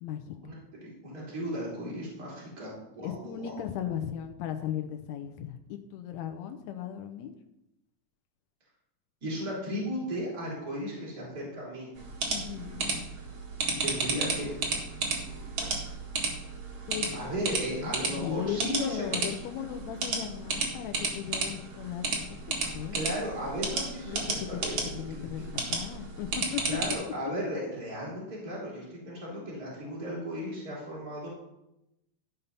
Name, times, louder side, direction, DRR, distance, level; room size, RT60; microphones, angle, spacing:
voice 1, 0.0-0.4 3.0-7.3 12.3-13.1 16.9-22.4 22.7-23.0 24.1-24.5 24.8-25.4 25.7-26.8, left 10 dB, 75° left, 6 dB, 1.9 m, -37 dB
voice 2, 0.8-3.5 9.2-11.9 13.8-14.5 17.1-19.4 22.9-25.4 26.7-31.3, equal, 30° right, -6 dB, 4.2 m, -35 dB
sound 1, 12.0-26.9, right 4 dB, 55° right, 2.7 m, -33 dB
14.0 x 5.5 x 5.5 m, 0.88 s
omnidirectional pair, 3.6 m